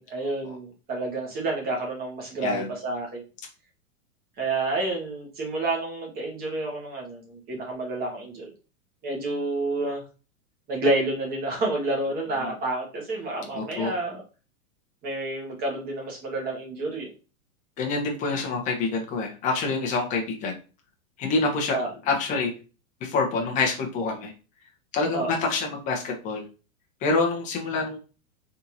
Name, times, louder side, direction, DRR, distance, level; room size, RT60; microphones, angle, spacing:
voice 1, 0.0-3.2 4.4-8.5 9.0-10.0 10.7-14.2 15.0-17.1 21.7-21.9 25.1-25.3, right 2 dB, 20° right, -1 dB, 1.4 m, -29 dB
voice 2, 13.5-13.9 17.8-20.6 21.2-21.8 22.0-22.5 23.0-24.3 24.9-26.4 27.0-28.0, left 3 dB, 15° left, 1 dB, 0.8 m, -26 dB
4.1 x 3.6 x 2.8 m, 0.33 s
supercardioid pair, 160°, 43 cm